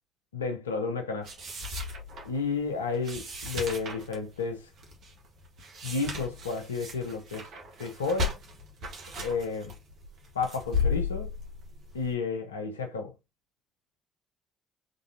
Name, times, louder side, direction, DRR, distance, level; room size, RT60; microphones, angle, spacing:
voice 1, 0.3-1.3 2.2-4.7 5.8-7.5 7.8-8.4 9.2-9.7 10.3-11.3 11.9-13.1, left 4 dB, 85° left, 0.8 m, -32 dB
sound 1, 1.2-12.1, left 4 dB, 60° right, 1.5 m, -35 dB
3.8 x 3.8 x 2.7 m
figure-of-eight pair, 50°, 0 cm